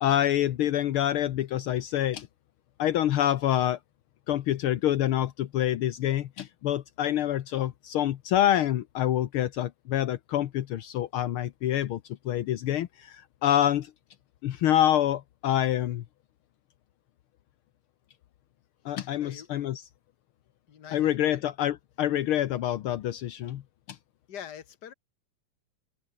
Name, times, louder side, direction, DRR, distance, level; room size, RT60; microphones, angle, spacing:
voice 1, 0.0-2.3 2.8-3.8 4.3-13.9 14.4-16.0 18.8-19.8 20.9-23.6 23.9-24.0, left 12 dB, 75° left, 1.2 m, -26 dB
voice 2, 19.2-19.5 20.7-21.5 24.3-24.9, left 9 dB, 45° left, 1.6 m, -44 dB
open air
omnidirectional pair, 3.5 m